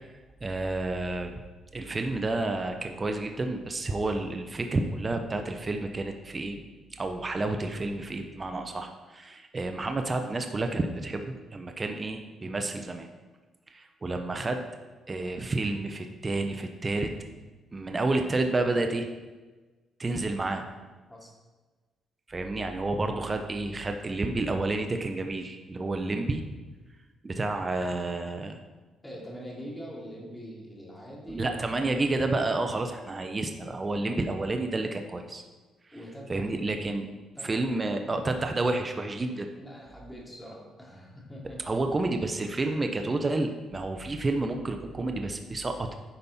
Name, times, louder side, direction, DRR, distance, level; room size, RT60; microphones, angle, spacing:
voice 1, 0.4-1.3 1.7-6.6 7.0-13.1 13.7-14.6 15.1-17.1 17.7-19.1 20.0-20.6 22.3-26.4 27.2-28.6 31.3-35.4 36.3-37.1 37.4-39.5 41.7-45.9, right 2 dB, 25° right, 5 dB, 0.8 m, -30 dB
voice 2, 29.0-31.9 35.9-36.5 37.3-38.0 39.6-41.6, equal, 10° left, -4 dB, 2.8 m, -43 dB
10.0 x 5.3 x 4.2 m, 1.3 s
cardioid pair, 90°, 0 cm